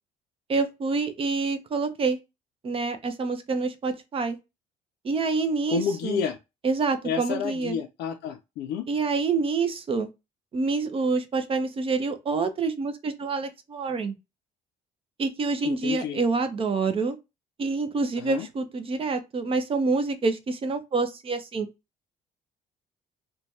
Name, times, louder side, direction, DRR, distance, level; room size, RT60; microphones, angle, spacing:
voice 1, 0.5-2.2 2.6-4.4 5.0-6.2 6.6-7.8 8.9-10.1 10.5-14.1 15.2-17.2 17.6-21.7, right 4 dB, 35° right, 0.5 m, -27 dB
voice 2, 5.7-6.4 7.0-8.9 15.6-16.2 18.2-18.5, left 7 dB, 80° left, 0.4 m, -30 dB
3.1 x 2.2 x 2.6 m
cardioid pair, 110°, 17 cm